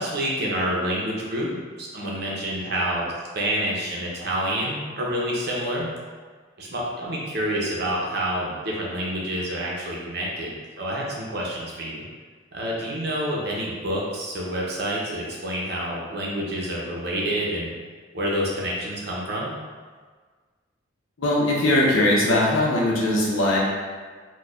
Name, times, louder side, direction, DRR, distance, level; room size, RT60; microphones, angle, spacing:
voice 1, 0.0-3.1 3.3-5.9 6.6-12.1 12.5-17.7 18.1-19.5, right 1 dB, 55° right, -3 dB, 0.7 m, -28 dB
voice 2, 21.2-23.6, left 1 dB, 80° left, -3 dB, 0.7 m, -20 dB
4.1 x 2.3 x 2.4 m, 1.5 s
head